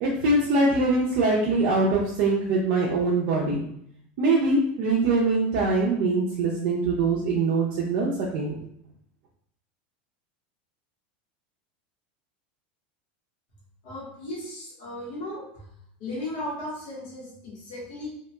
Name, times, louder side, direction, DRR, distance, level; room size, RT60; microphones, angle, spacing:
voice 1, 0.0-3.6 4.2-8.6, right 3 dB, 55° right, -5 dB, 0.6 m, -23 dB
voice 2, 13.8-15.6 16.0-18.1, left 1 dB, 65° left, -7 dB, 1.3 m, -36 dB
2.9 x 2.8 x 2.2 m, 0.71 s
supercardioid pair, 155°, 5 cm